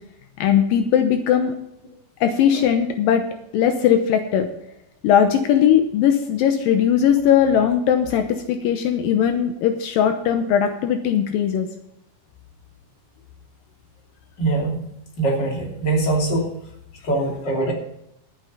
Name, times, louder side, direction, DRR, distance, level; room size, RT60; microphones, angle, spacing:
voice 1, 0.4-1.5 2.2-3.2 3.5-4.5 5.0-11.7, left 9 dB, 80° left, 7 dB, 2.5 m, -19 dB
voice 2, 14.4-14.8 15.2-16.5 17.0-17.7, right 2 dB, 30° left, -1 dB, 3.2 m, -22 dB
12.0 x 9.5 x 5.6 m, 0.80 s
omnidirectional pair, 4.2 m